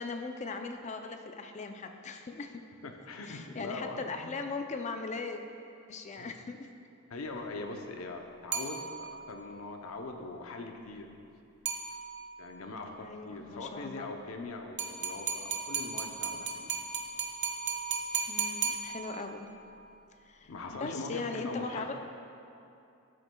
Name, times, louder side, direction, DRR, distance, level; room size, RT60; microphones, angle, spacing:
voice 1, 0.0-2.6 3.2-5.4 5.9-6.7 13.0-14.1 18.3-19.5 20.3-21.9, left 4 dB, 35° left, 6 dB, 0.4 m, -39 dB
voice 2, 2.8-4.3 6.2-6.3 7.1-11.1 12.4-16.7 20.4-21.9, left 2 dB, 80° left, 4 dB, 0.6 m, -41 dB
sound 1, 8.5-9.3 11.7-12.4 14.8-19.4, right 6 dB, 50° right, 0.7 m, -35 dB
12.0 x 7.5 x 2.2 m, 2.6 s
head